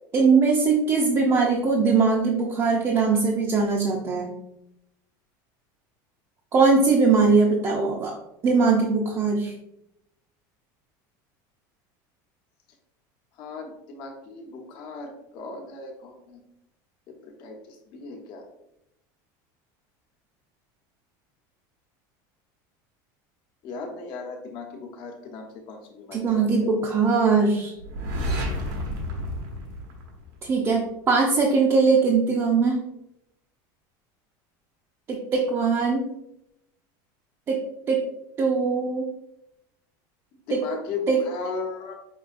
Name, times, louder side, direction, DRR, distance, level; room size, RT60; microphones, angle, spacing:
voice 1, 0.1-4.3 6.5-8.2 8.4-9.5 26.1-27.7 30.4-32.8 35.1-36.1 37.5-37.6 37.9-38.0 38.4-39.1 40.5-40.6 41.1-41.2, right 4 dB, 25° right, -2 dB, 0.5 m, -21 dB
voice 2, 13.4-16.4 17.1-18.4 23.6-26.7 35.7-36.0 40.5-41.9, left 4 dB, 50° left, 2 dB, 1.0 m, -37 dB
sound 1, 27.8-30.7, equal, 85° right, 1.0 m, -30 dB
5.4 x 2.8 x 2.5 m, 0.81 s
supercardioid pair, 150°, 10 cm